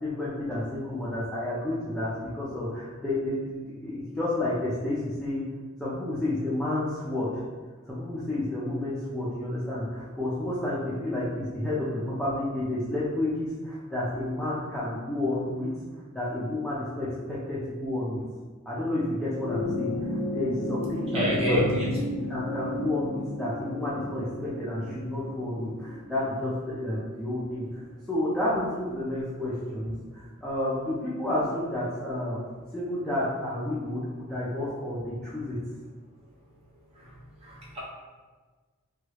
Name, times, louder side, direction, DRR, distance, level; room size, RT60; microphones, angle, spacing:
voice 1, 0.0-5.5 5.8-7.4 7.9-15.7 16.1-18.2 18.7-22.0 22.3-27.6 28.1-32.4 32.7-35.6, left 1 dB, 5° left, -10 dB, 0.5 m, -30 dB
sound 1, 19.2-27.8 29.0-29.1, left 1 dB, 85° left, 0.5 m, -34 dB
voice 2, 21.1-21.9 37.4-37.8, equal, 30° right, -5 dB, 0.7 m, -26 dB
3.1 x 2.3 x 3.0 m, 1.4 s
head